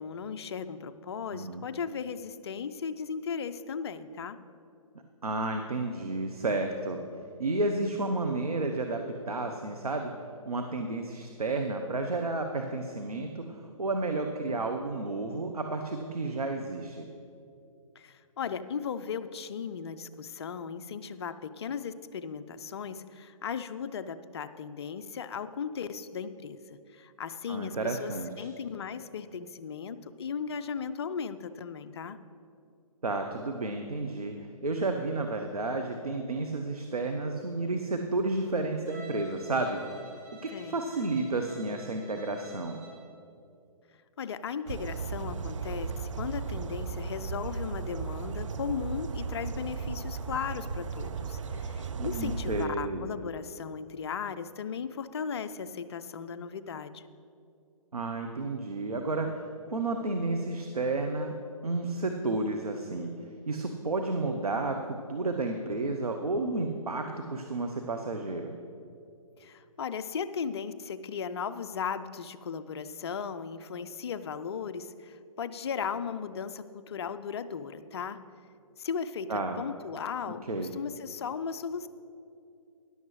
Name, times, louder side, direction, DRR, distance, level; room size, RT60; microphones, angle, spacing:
voice 1, 0.0-4.4 18.0-28.1 28.4-32.2 40.5-40.7 44.2-57.0 69.4-78.2 78.8-81.9, left 6 dB, 45° left, 11 dB, 0.5 m, -36 dB
voice 2, 1.3-1.7 5.2-7.0 7.4-10.1 10.5-17.1 27.5-28.5 33.0-39.8 40.1-40.2 40.4-42.8 51.9-53.1 57.9-59.4 59.7-61.3 61.6-63.1 63.5-68.5 79.3-79.6 80.5-80.7, right 2 dB, 85° right, 4 dB, 0.8 m, -31 dB
Bowed string instrument, 38.9-43.1, right 1 dB, 15° right, 2.5 m, -50 dB
sound 1, 44.7-52.7, right 5 dB, 55° right, 0.5 m, -36 dB
13.5 x 10.5 x 3.2 m, 2.5 s
figure-of-eight pair, 140°, 19 cm